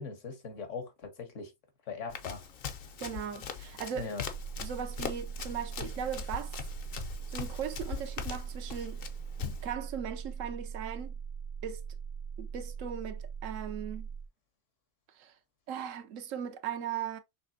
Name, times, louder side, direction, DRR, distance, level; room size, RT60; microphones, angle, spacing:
voice 1, 0.0-1.5 1.9-2.4 3.9-4.2, left 5 dB, 75° left, 1.5 m, -40 dB
Run, 2.1-9.7, left 7 dB, 55° left, 0.8 m, -41 dB
voice 2, 3.0-4.1 4.6-6.6 7.3-9.0 9.4-11.1 11.6-11.8 12.4-14.1 15.1-15.3 15.7-17.2, right 8 dB, 85° right, 1.1 m, -38 dB
sound 1, 4.2-14.3, right 6 dB, 45° right, 0.4 m, -41 dB
6.1 x 3.2 x 2.6 m
omnidirectional pair, 1.3 m